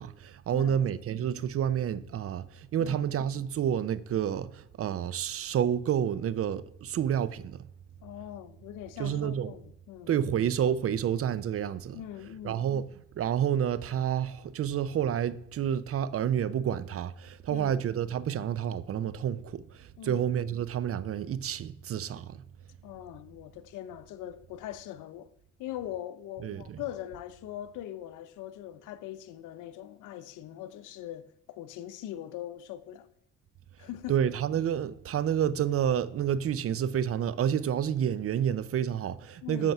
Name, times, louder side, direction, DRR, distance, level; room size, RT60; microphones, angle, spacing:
voice 1, 0.0-7.6 9.0-9.6 10.1-22.5 26.4-26.8 34.1-39.7, right 9 dB, 50° right, 0.5 m, -29 dB
voice 2, 8.0-10.1 11.9-12.6 17.5-17.8 20.0-20.2 22.8-25.3 25.6-33.1 33.8-34.1 39.4-39.7, left 12 dB, 85° left, 0.6 m, -41 dB
8.0 x 4.4 x 5.9 m
cardioid pair, 90°, 30 cm